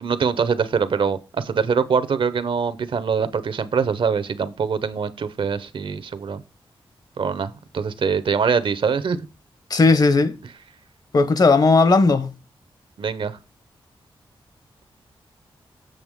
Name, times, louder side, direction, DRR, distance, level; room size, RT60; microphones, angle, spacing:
voice 1, 0.0-6.4 7.2-9.2 13.0-13.4, right 6 dB, 65° right, 0.8 m, -23 dB
voice 2, 9.7-10.4 11.1-12.3, left 3 dB, 45° left, 0.9 m, -16 dB
7.9 x 7.0 x 3.6 m
wide cardioid pair, 125°, 9 cm